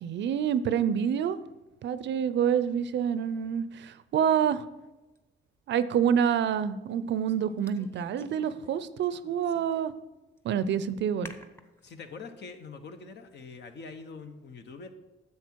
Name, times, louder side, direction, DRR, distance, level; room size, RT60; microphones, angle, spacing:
voice 1, 0.0-1.4 1.8-4.6 5.7-9.9 10.4-11.3, right 8 dB, 65° right, 14 dB, 0.5 m, -27 dB
sound 1, 5.1-5.2 6.9-8.7 9.0-10.0 10.4-10.5 11.2-11.8, left 1 dB, 10° left, 0.9 m, -51 dB
voice 2, 11.8-14.9, left 4 dB, 60° left, 7 dB, 1.1 m, -44 dB
10.0 x 7.4 x 4.6 m, 1.1 s
cardioid pair, 90°, 20 cm